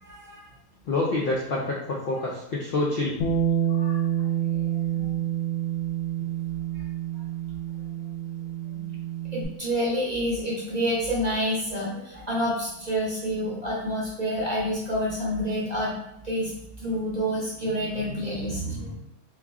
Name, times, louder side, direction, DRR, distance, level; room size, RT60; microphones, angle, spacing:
voice 1, 0.0-0.4 3.8-4.0 4.4-4.5 4.9-5.2 8.7-8.8 9.3-15.9 16.2-16.5 16.8-18.9, equal, 40° right, -6 dB, 0.6 m, -28 dB
voice 2, 0.9-3.2, left 2 dB, 90° left, -3 dB, 0.5 m, -27 dB
Bass guitar, 3.2-9.5, right 10 dB, 65° left, 0.8 m, -28 dB
3.4 x 2.4 x 3.5 m, 0.81 s
omnidirectional pair, 1.6 m